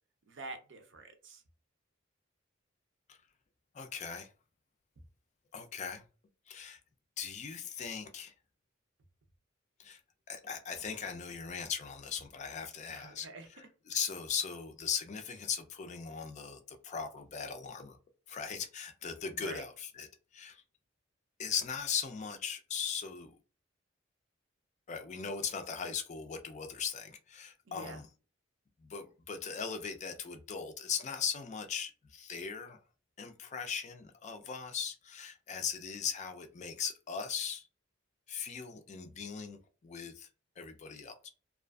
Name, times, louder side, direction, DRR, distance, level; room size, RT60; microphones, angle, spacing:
voice 1, 0.3-1.4 12.9-13.5 19.3-19.6 27.7-28.0, right 2 dB, 65° right, 0.5 m, -46 dB
voice 2, 3.7-4.3 5.5-6.0 6.5-6.8 7.2-8.3 9.8-10.0 10.3-18.0 18.3-20.1 20.3-20.6 21.4-23.4 24.9-28.1 28.8-32.8 33.2-37.7 38.3-40.3 40.6-41.3, left 6 dB, 35° left, 0.4 m, -39 dB
2.4 x 2.4 x 2.2 m
head